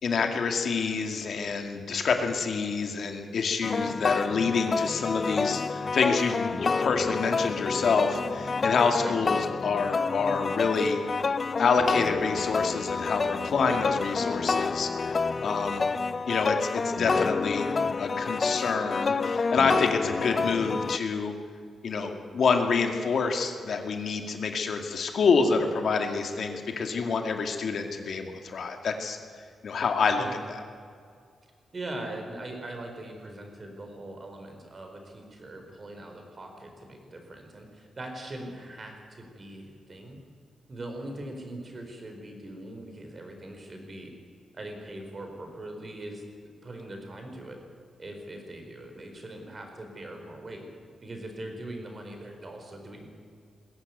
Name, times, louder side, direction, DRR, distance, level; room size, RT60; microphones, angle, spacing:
voice 1, 0.0-11.0 11.6-15.8 16.3-17.7 18.0-21.3 21.8-29.2 29.6-30.6, left 5 dB, 60° left, 5 dB, 2.2 m, -27 dB
sound 1, 3.6-21.0, left 4 dB, 35° left, 0.6 m, -29 dB
voice 2, 31.7-40.2 40.7-44.1 44.5-47.6 48.0-50.6 51.0-53.1, right 1 dB, 30° right, 4 dB, 4.4 m, -41 dB
21.0 x 16.0 x 9.4 m, 2.2 s
wide cardioid pair, 135°, 0 cm